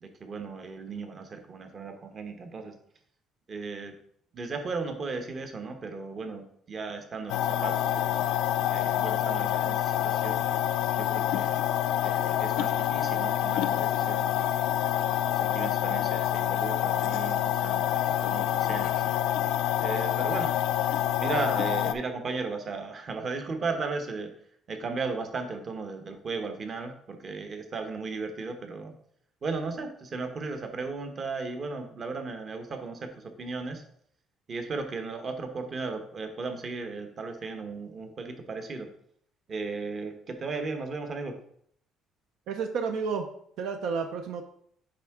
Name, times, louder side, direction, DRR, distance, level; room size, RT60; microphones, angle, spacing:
voice 1, 0.0-2.8 3.5-4.0 4.3-10.4 11.0-11.7 12.0-14.7 15.3-19.2 19.8-20.5 21.2-24.3 24.7-29.0 29.4-33.8 34.5-38.9 39.5-41.4, right 4 dB, 35° right, 6 dB, 0.9 m, -36 dB
sound 1, 7.3-21.9, left 12 dB, 85° left, 0.3 m, -27 dB
voice 2, 42.5-43.3 43.6-44.4, right 5 dB, 75° right, 5 dB, 0.6 m, -31 dB
9.1 x 3.5 x 3.6 m, 0.67 s
cardioid pair, 135°, 0 cm